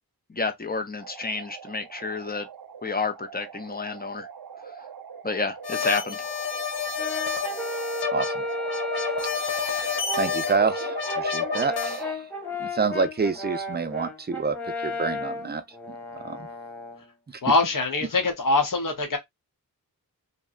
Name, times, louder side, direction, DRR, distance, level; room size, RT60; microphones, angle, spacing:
voice 1, 0.3-2.5 2.8-4.3 5.2-6.3, left 4 dB, 25° left, 0.6 m, -30 dB
sound 1, 1.0-12.1, right 6 dB, 70° right, 0.7 m, -40 dB
sound 2, 5.6-12.0, left 7 dB, 85° left, 0.7 m, -30 dB
Brass instrument, 7.0-9.5 10.1-17.0, left 1 dB, 5° left, 0.9 m, -33 dB
voice 2, 8.1-8.4 8.9-9.2 9.4-12.3 12.6-14.6 14.8-15.6 15.9-16.5, right 4 dB, 25° right, 0.5 m, -28 dB
voice 3, 17.4-19.2, left 3 dB, 55° left, 0.9 m, -23 dB
2.8 x 2.2 x 2.3 m
wide cardioid pair, 60°, 38 cm